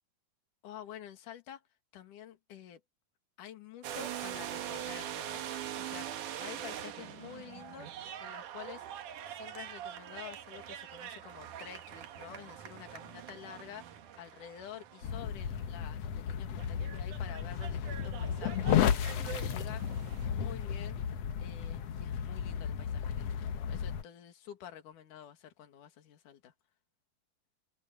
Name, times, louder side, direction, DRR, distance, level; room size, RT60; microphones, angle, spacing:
voice 1, 0.6-1.6 1.9-2.8 3.4-5.4 5.8-7.9 8.2-8.9 9.3-18.7 19.2-20.0 20.2-26.5, left 10 dB, 55° left, 3.4 m, -49 dB
sound 1, 3.8-15.7 16.6-20.3, right 10 dB, 60° right, 2.5 m, -43 dB
sound 2, 15.0-24.0, left 8 dB, 85° left, 1.3 m, -33 dB
omnidirectional pair, 4.6 m